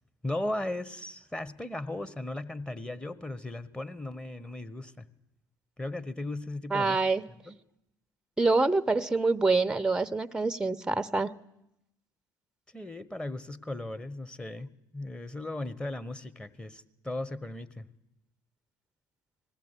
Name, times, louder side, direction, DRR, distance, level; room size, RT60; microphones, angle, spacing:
voice 1, 0.2-5.0 5.8-7.0 7.4-7.6 12.7-17.8, left 1 dB, 10° left, 13 dB, 1.3 m, -37 dB
voice 2, 6.7-7.2 8.4-11.3, right 3 dB, 10° right, 15 dB, 0.8 m, -26 dB
20.5 x 15.0 x 9.9 m, 0.87 s
hypercardioid pair, 70°, 10 cm